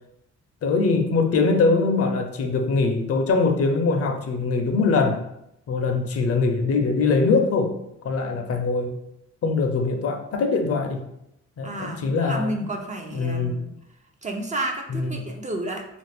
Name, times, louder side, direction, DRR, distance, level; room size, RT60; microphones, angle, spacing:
voice 1, 0.6-5.3 5.7-7.7 8.0-9.0 9.4-11.0 11.6-12.7 13.1-13.6 14.9-15.2, left 4 dB, 50° left, 4 dB, 0.6 m, -22 dB
voice 2, 11.6-13.7 14.2-15.9, right 1 dB, 25° right, 2 dB, 0.5 m, -31 dB
2.5 x 2.5 x 3.4 m, 0.78 s
cardioid pair, 80°, 30 cm